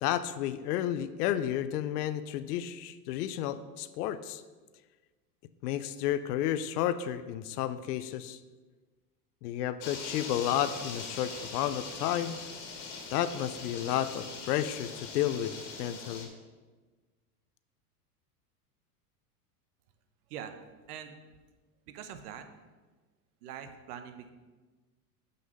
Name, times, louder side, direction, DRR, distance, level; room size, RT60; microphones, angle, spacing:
voice 1, 0.0-4.4 5.6-8.4 9.4-12.4 13.1-15.5 15.8-16.3, left 11 dB, 75° left, 13 dB, 0.6 m, -31 dB
sound 1, 9.8-16.3, left 4 dB, 40° left, 1.7 m, -42 dB
voice 2, 21.9-22.5 23.4-24.3, right 9 dB, 70° right, 8 dB, 1.0 m, -43 dB
6.5 x 5.5 x 5.5 m, 1.3 s
supercardioid pair, 115°, 47 cm